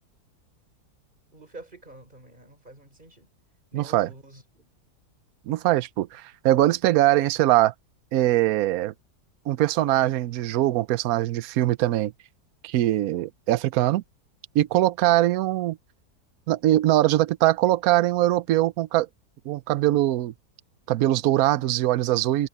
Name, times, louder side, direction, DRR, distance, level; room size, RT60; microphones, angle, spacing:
voice 1, 1.3-3.3 3.7-4.7, right 2 dB, 30° right, 5.0 m, -47 dB
voice 2, 3.7-4.1 5.5-7.7 8.1-8.9 9.5-12.1 12.6-14.0 14.5-15.8 16.5-19.1 19.5-20.3 20.9-22.5, right 15 dB, 70° right, 1.1 m, -22 dB
omnidirectional pair, 1.7 m